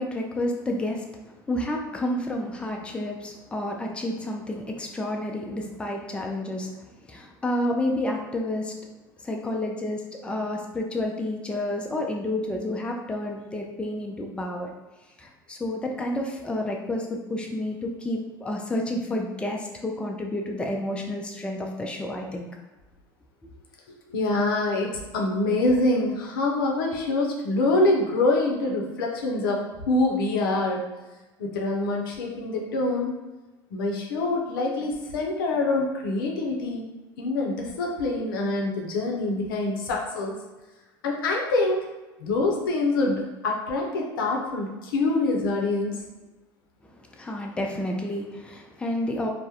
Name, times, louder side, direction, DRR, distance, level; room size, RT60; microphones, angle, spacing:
voice 1, 0.0-6.7 7.1-8.7 9.2-14.7 15.2-22.5 47.1-49.3, left 1 dB, 10° left, 1 dB, 0.4 m, -30 dB
voice 2, 24.1-30.8 31.4-33.1 33.7-36.9 37.2-40.4 41.0-41.9 42.2-46.0, left 2 dB, 80° left, 0 dB, 0.5 m, -25 dB
2.2 x 2.0 x 2.8 m, 1.1 s
hypercardioid pair, 80°, 11 cm